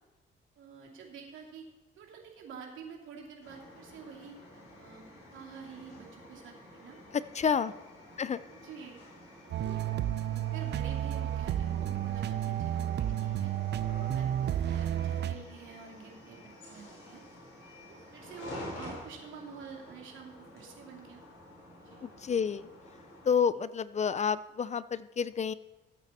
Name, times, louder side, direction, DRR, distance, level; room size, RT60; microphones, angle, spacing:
voice 1, 0.6-1.7 2.0-4.3 4.7-5.0 5.3-7.0 7.6-7.7 8.5-9.0 9.6-17.2 17.9-21.2 21.8-22.0, right 6 dB, 80° right, 0 dB, 2.7 m, -48 dB
sound 1, 3.4-23.3, left 1 dB, 80° left, 4.6 m, -50 dB
voice 2, 7.1-7.7 8.2-8.4 22.0-22.7 23.2-25.5, left 6 dB, 35° left, 16 dB, 0.4 m, -29 dB
sound 2, 9.5-15.4, right 11 dB, 60° right, 0.5 m, -31 dB
14.5 x 8.5 x 4.2 m, 1.1 s
cardioid pair, 90°, 20 cm